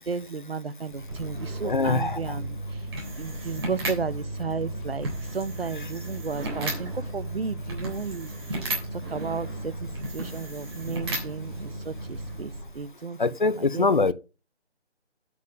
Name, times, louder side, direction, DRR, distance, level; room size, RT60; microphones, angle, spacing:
voice 1, 0.1-2.6 3.2-5.1 5.3-8.3 9.1-9.7 10.1-13.9, right 5 dB, 60° right, 0.9 m, -33 dB
sound 1, 0.9-12.8, right 1 dB, 25° right, 3.6 m, -34 dB
voice 2, 1.6-2.4 13.2-14.1, left 3 dB, 45° left, 0.8 m, -23 dB
8.3 x 6.9 x 7.2 m
figure-of-eight pair, 170°, 34 cm